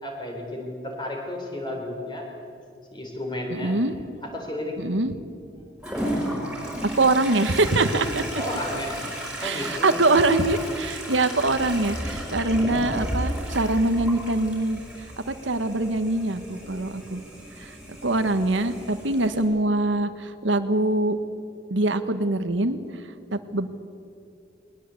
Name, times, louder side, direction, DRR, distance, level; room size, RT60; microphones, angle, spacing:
voice 1, 0.0-2.3 2.9-3.8 4.2-4.8 6.1-6.3 8.4-9.1 9.4-10.0 11.4-11.7, left 1 dB, 25° left, 1 dB, 4.3 m, -33 dB
voice 2, 3.5-3.9 4.8-5.1 6.9-8.2 9.4-14.8 15.3-17.2 17.6-17.7 18.0-21.2 21.7-22.8 23.3-23.7, right 2 dB, 85° right, 10 dB, 1.3 m, -23 dB
Toilet flush, 5.8-19.4, equal, 5° right, 5.4 m, -34 dB
21.5 x 20.5 x 8.4 m, 2.6 s
head